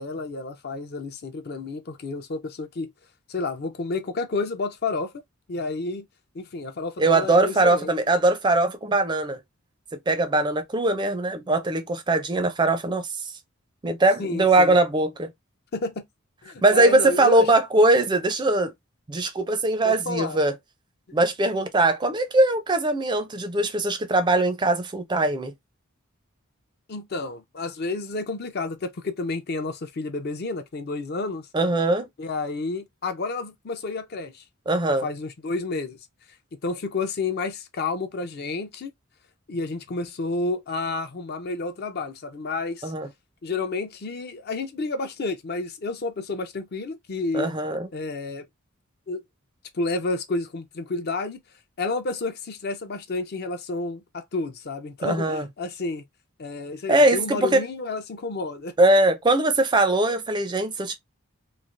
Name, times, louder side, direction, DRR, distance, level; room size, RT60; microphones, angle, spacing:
voice 1, 0.0-2.9 3.3-5.1 5.5-6.1 6.3-7.9 14.2-14.8 15.7-16.0 16.4-17.5 19.8-20.4 21.1-21.2 26.9-31.5 32.2-34.4 35.0-36.0 36.6-38.9 39.5-42.9 43.4-47.5 47.9-48.4 49.1-49.2 49.7-51.4 51.8-56.0 56.4-58.7, left 3 dB, 50° left, 0.5 m, -30 dB
voice 2, 7.0-9.4 10.1-13.0 13.8-15.3 16.6-18.7 19.1-20.5 21.1-25.5 31.5-32.0 34.7-35.1 42.8-43.1 47.3-47.9 55.0-55.5 56.9-57.6 58.8-60.9, right 2 dB, 20° right, 0.4 m, -21 dB
3.2 x 2.3 x 2.5 m
head